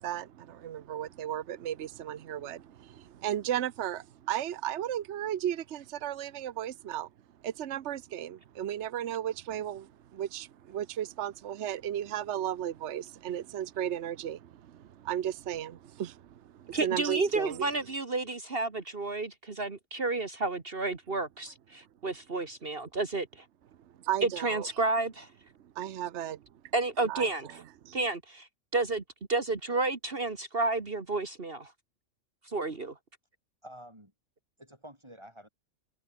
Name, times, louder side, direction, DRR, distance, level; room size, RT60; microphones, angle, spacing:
voice 1, 0.0-7.1 7.4-17.7 24.0-24.7 25.8-26.4 27.1-27.3 27.8-28.0, right 11 dB, 65° right, 1.1 m, -35 dB
voice 2, 16.7-23.3 24.2-25.3 26.7-27.6 27.9-28.5 28.7-29.0 29.3-31.7 32.5-32.9, right 3 dB, 50° right, 2.0 m, -31 dB
voice 3, 33.6-34.1 34.6-35.5, equal, 20° right, 6.8 m, -49 dB
omnidirectional pair, 1.3 m